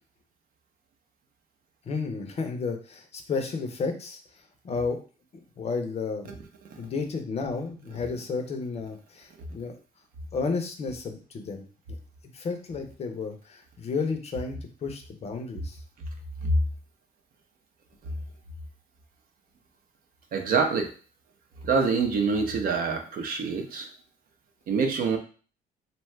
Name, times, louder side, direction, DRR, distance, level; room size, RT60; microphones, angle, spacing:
voice 1, 1.8-5.0 5.3-6.3 6.8-9.8 10.3-12.0 12.3-15.8, left 4 dB, 40° left, 5 dB, 0.6 m, -32 dB
voice 2, 20.3-20.9 21.6-23.9 24.7-25.2, right 4 dB, 60° right, 4 dB, 0.7 m, -25 dB
2.7 x 2.3 x 3.2 m, 0.38 s
cardioid pair, 110°, 17 cm